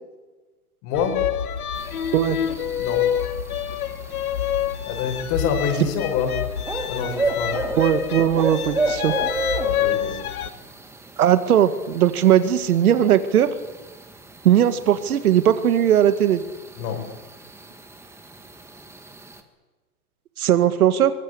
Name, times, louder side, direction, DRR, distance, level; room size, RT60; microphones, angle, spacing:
voice 1, 0.8-1.2 2.8-3.0 4.9-6.3 6.9-7.5 9.6-10.2 16.8-17.0, left 6 dB, 40° left, 4 dB, 6.9 m, -26 dB
sound 1, 0.9-10.5, left 10 dB, 75° left, 2.4 m, -27 dB
sound 2, 1.7-19.4, right 2 dB, 5° right, 1.8 m, -33 dB
voice 2, 7.8-9.1 11.2-13.5 14.4-16.4 20.4-21.1, right 10 dB, 75° right, 10 dB, 2.0 m, -18 dB
24.0 x 20.5 x 8.6 m, 1.3 s
hypercardioid pair, 135°, 44 cm